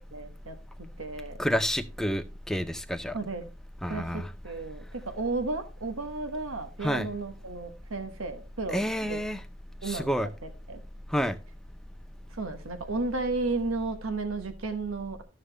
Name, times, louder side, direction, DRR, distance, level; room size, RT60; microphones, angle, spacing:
voice 1, 0.1-0.5 1.0-1.4 3.1-3.4 3.9-9.2 9.8-10.8 12.4-15.2, right 3 dB, 85° right, 1.1 m, -33 dB
voice 2, 1.4-3.1 3.8-4.3 6.8-7.1 8.7-9.4 9.8-10.3 11.1-11.4, equal, ahead, 0.5 m, -29 dB
13.0 x 6.5 x 3.3 m
head